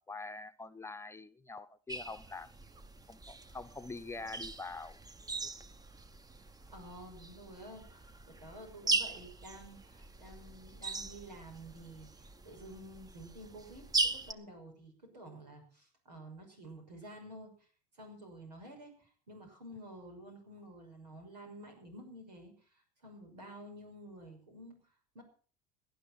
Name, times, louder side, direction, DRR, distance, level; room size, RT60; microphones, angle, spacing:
voice 1, 0.0-2.5 3.1-5.0 5.4-5.5, left 3 dB, 10° left, 1.0 m, -45 dB
sound 1, 1.9-14.3, right 3 dB, 20° right, 1.2 m, -40 dB
voice 2, 6.7-17.6 17.9-24.7 25.1-25.2, right 1 dB, 90° right, 6.0 m, -51 dB
18.5 x 11.0 x 5.7 m
hypercardioid pair, 75°, 20 cm